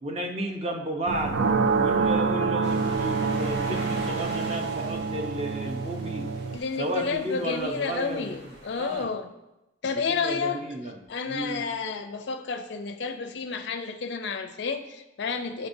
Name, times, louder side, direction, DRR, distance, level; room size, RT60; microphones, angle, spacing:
voice 1, 0.0-1.4 1.8-6.3 6.8-8.4 8.8-9.1 10.1-11.0 11.3-11.6, right 1 dB, 30° right, 2 dB, 0.6 m, -33 dB
sound 1, 1.1-6.6, right 4 dB, 70° right, 0.4 m, -26 dB
sound 2, 2.6-9.0, right 1 dB, 55° right, 1.2 m, -42 dB
voice 2, 6.5-9.3 9.8-10.6 11.1-15.7, left 5 dB, 60° left, 6 dB, 0.4 m, -30 dB
8.4 x 4.3 x 2.6 m, 0.96 s
head